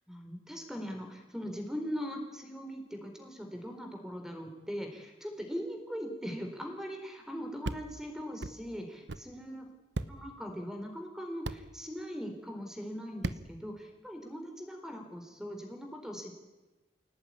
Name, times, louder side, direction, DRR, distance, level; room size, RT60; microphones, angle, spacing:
voice 1, 0.1-9.7 10.1-16.3, equal, 5° right, 4 dB, 4.3 m, -40 dB
sound 1, 7.6-7.8 8.4-8.6 9.1-9.2 9.9-10.1 11.4-11.6 13.2-13.4, right 2 dB, 75° right, 1.0 m, -35 dB
27.5 x 18.0 x 9.8 m, 1.2 s
head